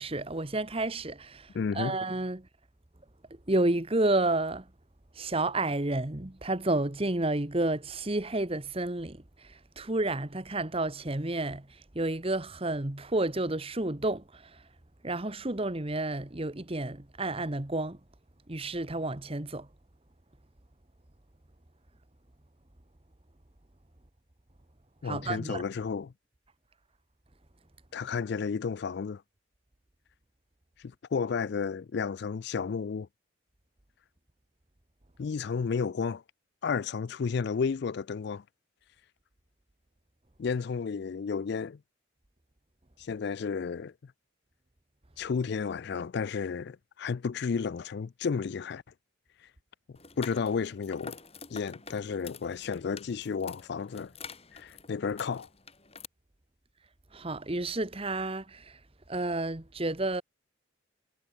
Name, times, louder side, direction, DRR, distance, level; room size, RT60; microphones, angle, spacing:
voice 1, 0.0-2.5 3.5-4.7 5.1-14.6 15.0-18.0 18.5-19.7 25.0-25.6 57.1-58.8 59.1-60.2, right 2 dB, 25° right, 1.2 m, -31 dB
voice 2, 1.5-2.0 25.0-26.1 27.9-29.2 30.8-33.1 35.2-36.2 36.6-38.4 40.4-41.8 43.0-44.1 45.2-48.8 50.2-51.2 51.5-54.1 54.5-55.5, left 5 dB, 50° left, 0.4 m, -32 dB
sound 1, 49.9-56.0, left 5 dB, 30° left, 5.9 m, -48 dB
head